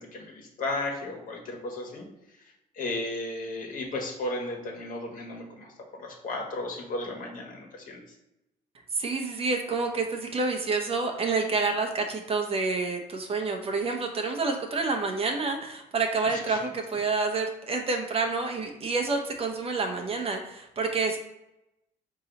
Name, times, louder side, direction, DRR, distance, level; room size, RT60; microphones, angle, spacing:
voice 1, 0.0-2.1 2.4-8.0 16.3-16.6, left 2 dB, 50° left, 0 dB, 1.4 m, -35 dB
voice 2, 8.9-21.2, right 4 dB, 35° right, 4 dB, 0.7 m, -28 dB
4.6 x 2.9 x 4.0 m, 0.90 s
cardioid pair, 110°, 17 cm